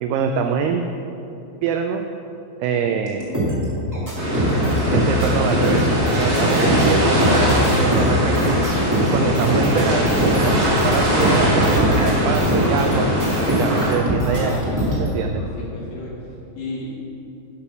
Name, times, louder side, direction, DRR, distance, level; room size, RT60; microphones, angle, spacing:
voice 1, 0.0-0.9 1.6-2.0 2.6-3.2 4.9-5.8 6.2-8.7 9.0-13.1 13.4-14.6 14.9-15.4, right 6 dB, 90° right, 5 dB, 2.3 m, -24 dB
sound 1, 3.2-12.9 13.2-15.1, equal, 10° right, 0.9 m, -23 dB
sound 2, 4.1-13.9, equal, 45° right, 1.4 m, -20 dB
voice 2, 14.2-16.1 16.6-16.9, left 1 dB, 55° left, -6 dB, 3.4 m, -33 dB
11.5 x 6.1 x 6.1 m, 2.8 s
omnidirectional pair, 5.3 m